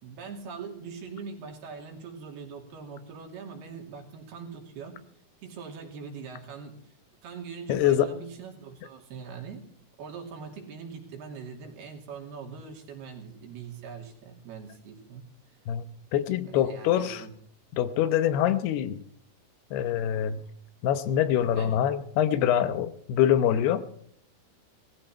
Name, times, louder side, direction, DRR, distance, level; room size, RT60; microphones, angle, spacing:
voice 1, 0.0-5.0 5.4-6.9 7.2-9.6 10.0-15.2 16.5-17.3 21.6-21.8, right 5 dB, 80° right, 1 dB, 4.8 m, -42 dB
voice 2, 7.7-8.1 15.7-15.8 16.1-17.2 17.7-19.0 19.7-20.4 20.8-23.8, left 10 dB, 85° left, 12 dB, 3.0 m, -24 dB
18.5 x 14.5 x 4.4 m, 0.64 s
omnidirectional pair, 4.5 m